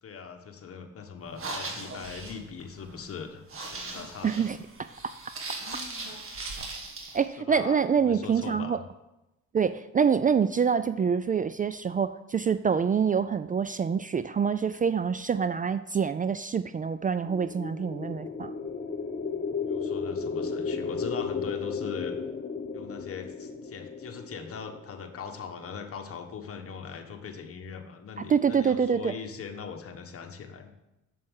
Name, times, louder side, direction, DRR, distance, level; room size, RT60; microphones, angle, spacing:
voice 1, 0.0-4.5 5.6-6.1 7.4-8.8 19.6-22.2 22.7-30.7, left 6 dB, 50° left, 5 dB, 1.4 m, -41 dB
sound 1, 1.2-7.2, right 3 dB, 45° right, 2.0 m, -39 dB
voice 2, 4.2-4.6 5.0-5.1 7.1-8.8 9.5-18.5 28.3-29.1, right 6 dB, 30° right, 13 dB, 0.4 m, -26 dB
sound 2, 17.1-25.2, left 5 dB, 30° left, 1.2 m, -34 dB
7.5 x 7.2 x 6.5 m, 0.95 s
cardioid pair, 90°, 30 cm